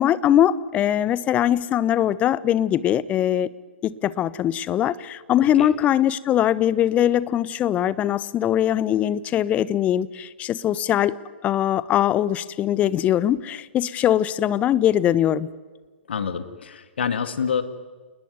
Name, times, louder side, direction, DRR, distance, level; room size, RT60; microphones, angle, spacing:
voice 1, 0.0-3.5 3.8-11.2 11.4-15.5, left 11 dB, 20° left, 19 dB, 1.0 m, -21 dB
voice 2, 16.1-17.6, left 7 dB, 65° left, 11 dB, 2.1 m, -27 dB
29.0 x 20.5 x 9.5 m, 1.4 s
figure-of-eight pair, 115°, 6 cm